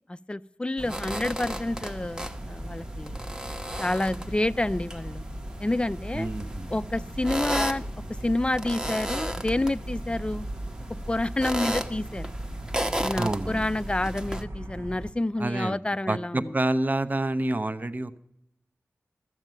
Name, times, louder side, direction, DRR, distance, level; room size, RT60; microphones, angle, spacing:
voice 1, 0.1-3.2 3.8-5.3 5.6-6.3 6.7-7.8 8.2-10.5 11.1-12.3 13.0-16.5, left 2 dB, 20° left, 14 dB, 0.5 m, -28 dB
sound 1, 0.8-14.4, right 1 dB, 15° right, 1.0 m, -35 dB
sound 2, 0.8-15.1, right 1 dB, 70° right, 1.3 m, -38 dB
voice 2, 6.1-6.7 13.2-13.6 15.4-15.8 16.1-18.2, right 2 dB, 35° right, 11 dB, 0.8 m, -28 dB
13.5 x 7.3 x 7.7 m, 0.81 s
wide cardioid pair, 50°, 5 cm